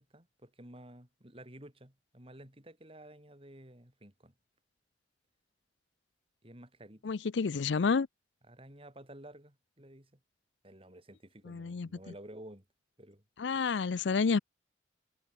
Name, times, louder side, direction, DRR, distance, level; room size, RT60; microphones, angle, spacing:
voice 1, 0.0-4.3 6.4-7.1 8.5-10.2 10.6-12.6 13.0-13.2, right 1 dB, 30° right, 5.1 m, -52 dB
voice 2, 7.0-8.1 11.5-11.9 13.4-14.4, left 5 dB, 85° left, 0.5 m, -29 dB
head